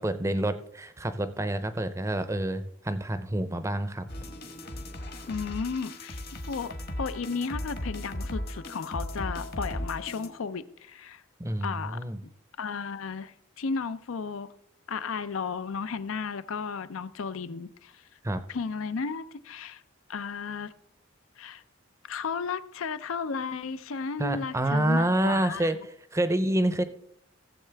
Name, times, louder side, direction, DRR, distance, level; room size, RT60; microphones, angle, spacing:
voice 1, 0.0-4.1 11.4-12.2 18.2-18.4 24.2-26.8, right 1 dB, 15° right, 0.5 m, -28 dB
sound 1, 4.1-10.3, left 1 dB, 50° left, 1.2 m, -37 dB
voice 2, 5.3-11.2 11.6-12.0 12.6-14.5 14.9-18.0 18.5-19.8 20.1-20.7 21.4-21.6 22.1-25.7, left 5 dB, 80° left, 0.5 m, -34 dB
15.5 x 7.3 x 3.4 m
head